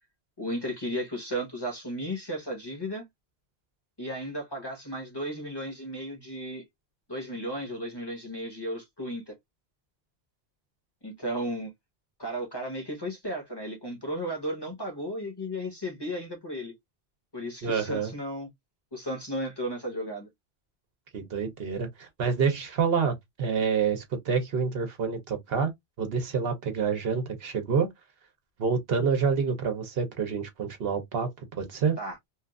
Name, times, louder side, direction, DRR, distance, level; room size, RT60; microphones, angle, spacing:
voice 1, 0.4-3.1 4.0-6.6 7.1-9.3 11.0-11.7 12.2-16.7 17.3-18.5 18.9-20.3 32.0-32.2, equal, 25° left, 0.9 m, -34 dB
voice 2, 17.6-18.1 21.1-25.7 26.0-27.9 28.6-31.3 31.6-32.0, right 6 dB, 65° right, 1.0 m, -27 dB
2.8 x 2.4 x 2.3 m
omnidirectional pair, 1.1 m